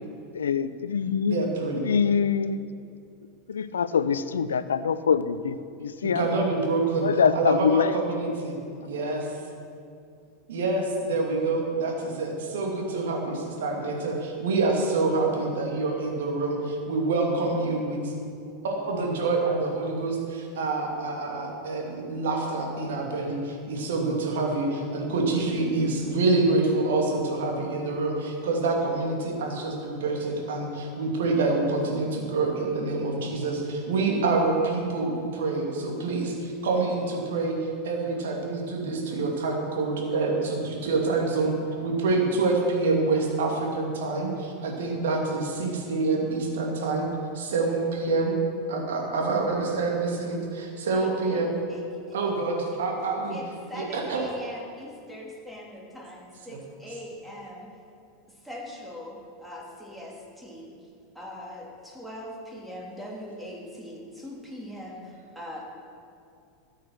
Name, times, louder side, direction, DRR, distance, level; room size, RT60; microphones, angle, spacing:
voice 1, 0.3-1.4 1.8-2.6 3.5-6.3 7.0-8.4, left 6 dB, 75° left, 14 dB, 0.5 m, -24 dB
voice 2, 1.3-1.8 6.2-7.1 7.3-9.3 10.5-18.1 18.4-41.5 41.8-47.1 47.3-48.3 48.7-51.5 52.1-53.4 53.7-54.3 56.5-57.0, right 3 dB, 65° right, 0 dB, 2.5 m, -27 dB
voice 3, 50.9-51.4 52.1-52.2 53.3-57.7 58.4-60.7 61.1-65.0 65.3-65.6, left 1 dB, 5° right, -3 dB, 3.1 m, -41 dB
13.5 x 8.3 x 6.0 m, 2.5 s
figure-of-eight pair, 85°, 0 cm